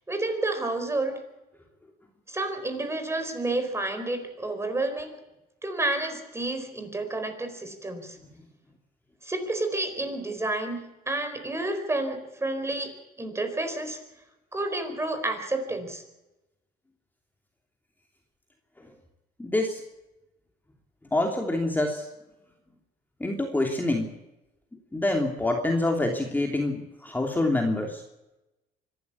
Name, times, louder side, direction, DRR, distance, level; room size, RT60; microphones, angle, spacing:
voice 1, 0.1-1.2 2.3-5.1 5.6-8.2 9.2-14.0 14.5-16.0, right 2 dB, 15° right, 7 dB, 4.5 m, -30 dB
voice 2, 19.4-19.8 21.1-22.1 23.2-24.1 24.9-28.0, left 2 dB, 10° left, 2 dB, 2.9 m, -26 dB
24.5 x 12.5 x 8.4 m, 0.97 s
cardioid pair, 110°, 17 cm